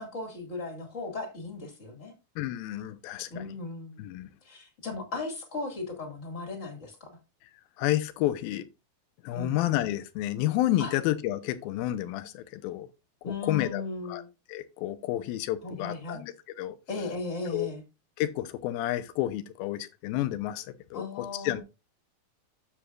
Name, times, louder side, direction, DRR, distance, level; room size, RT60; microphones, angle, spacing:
voice 1, 0.0-2.1 3.3-4.0 4.4-7.1 9.3-9.6 10.8-10.9 13.2-14.3 15.6-16.2 16.9-17.8 20.9-21.6, left 3 dB, 25° left, 1.8 m, -36 dB
voice 2, 2.4-3.5 4.0-4.3 7.8-8.6 9.2-12.9 13.2-13.8 14.1-14.2 14.5-16.3 16.6-16.8 17.5-17.7 18.2-21.6, left 14 dB, 85° left, 2.6 m, -30 dB
9.7 x 7.3 x 2.4 m
omnidirectional pair, 4.2 m